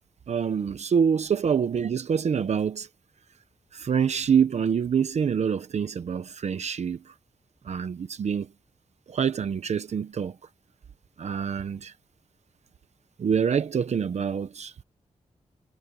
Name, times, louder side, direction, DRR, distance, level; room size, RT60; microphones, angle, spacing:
voice 1, 0.3-2.9 3.7-7.0 7.7-8.5 9.1-10.3 11.2-11.9 13.2-14.8, right 7 dB, 55° right, 0.8 m, -26 dB
wide cardioid pair, 180°, 13 cm